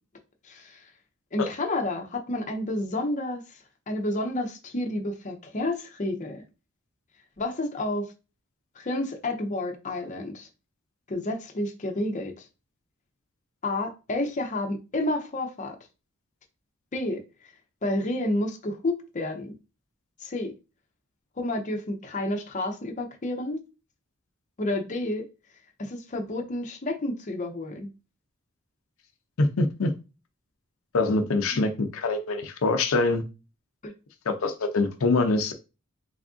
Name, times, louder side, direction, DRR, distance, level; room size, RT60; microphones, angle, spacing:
voice 1, 0.4-0.9 1.3-3.4 3.9-6.4 7.4-8.1 8.8-10.5 11.1-12.4 13.6-15.8 16.9-17.2 17.8-19.5 20.2-20.5 21.4-23.6 24.6-25.3 25.8-27.9 33.8-33.9, left 1 dB, 35° left, 0.6 m, -30 dB
voice 2, 29.4-29.9 30.9-33.2 34.3-35.5, left 3 dB, 80° left, 0.5 m, -24 dB
3.4 x 2.5 x 3.6 m
head